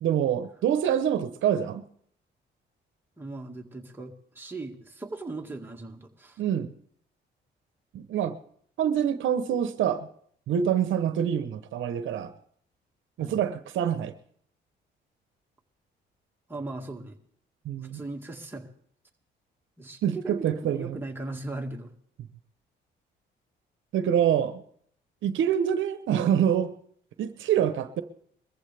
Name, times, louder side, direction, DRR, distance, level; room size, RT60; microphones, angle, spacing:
voice 1, 0.0-1.8 6.4-6.7 7.9-8.4 8.8-10.1 10.5-12.3 13.2-14.1 17.6-18.0 20.0-21.0 23.9-24.6 25.2-26.7 27.2-28.0, right 9 dB, 75° right, 10 dB, 0.9 m, -26 dB
voice 2, 3.2-6.4 13.2-13.4 16.5-17.2 17.8-18.7 19.8-21.9, right 2 dB, 10° right, 1 dB, 1.9 m, -38 dB
21.5 x 14.5 x 3.4 m, 0.64 s
cardioid pair, 90°, 20 cm